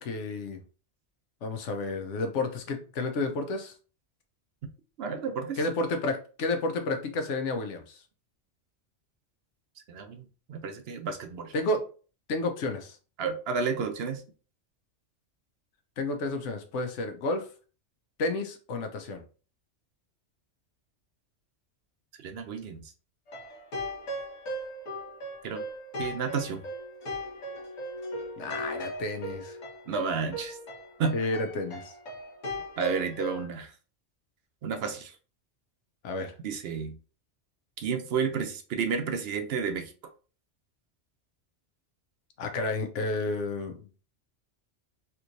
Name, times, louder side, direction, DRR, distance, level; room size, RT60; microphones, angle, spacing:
voice 1, 0.0-0.6 1.4-3.7 5.6-8.0 11.5-11.8 12.3-13.0 16.0-17.4 18.2-19.2 28.4-29.6 31.1-31.9 36.0-36.3 42.4-43.9, left 2 dB, 85° left, 6 dB, 1.0 m, -31 dB
voice 2, 5.0-5.6 9.9-11.5 13.2-14.2 22.2-22.9 25.4-25.6 26.0-26.6 29.9-30.6 31.0-31.2 32.8-33.7 34.6-35.1 36.4-36.9 37.8-39.9, right 5 dB, 65° right, 7 dB, 0.7 m, -31 dB
sound 1, 23.3-33.4, equal, 70° left, 1.3 m, -38 dB
3.3 x 3.0 x 2.5 m, 0.37 s
omnidirectional pair, 1.2 m